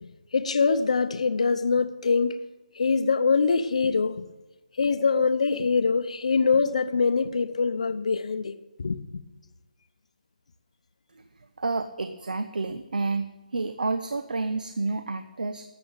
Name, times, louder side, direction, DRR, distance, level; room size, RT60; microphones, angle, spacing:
voice 1, 0.3-2.4 2.8-4.2 4.8-9.2, left 4 dB, 50° left, 0.8 m, -24 dB
voice 2, 11.6-15.6, right 3 dB, 75° right, 1.0 m, -29 dB
13.0 x 7.8 x 8.7 m
hypercardioid pair, 175°, 5 cm